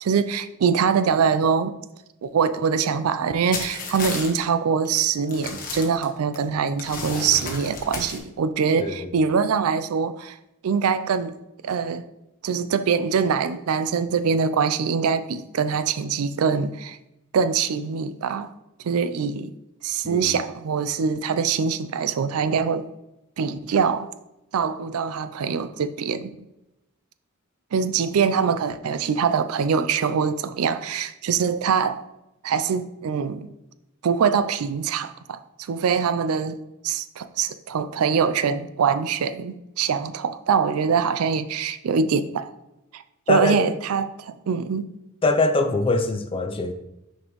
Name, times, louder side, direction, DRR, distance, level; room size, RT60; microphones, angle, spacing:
voice 1, 0.0-1.7 2.2-10.4 10.6-11.3 11.6-12.0 12.4-17.0 17.3-18.5 18.8-19.5 19.8-22.8 23.4-24.1 24.5-26.3 27.7-32.0 32.4-33.5 34.0-35.4 35.7-36.6 36.8-42.5 42.9-44.9, right 6 dB, 80° right, 0.4 m, -23 dB
sound 1, 3.5-4.4 4.8-5.0 5.3-6.4 6.8-8.2, left 3 dB, 40° left, 1.1 m, -32 dB
voice 2, 8.8-9.1 20.0-20.4 43.3-43.6 45.2-46.7, left 3 dB, 25° left, 0.5 m, -23 dB
6.2 x 5.2 x 3.1 m
head